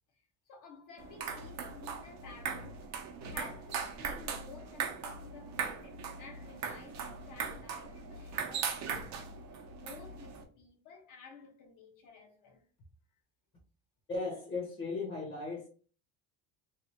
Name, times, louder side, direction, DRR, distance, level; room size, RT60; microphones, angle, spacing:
voice 1, 0.5-2.9 3.2-12.6, left 4 dB, 55° left, 1.0 m, -53 dB
sound 1, 1.0-10.4, right 6 dB, 45° right, 0.7 m, -39 dB
voice 2, 14.1-15.7, left 3 dB, 30° left, 0.9 m, -36 dB
3.2 x 2.4 x 2.9 m
cardioid pair, 160°, 37 cm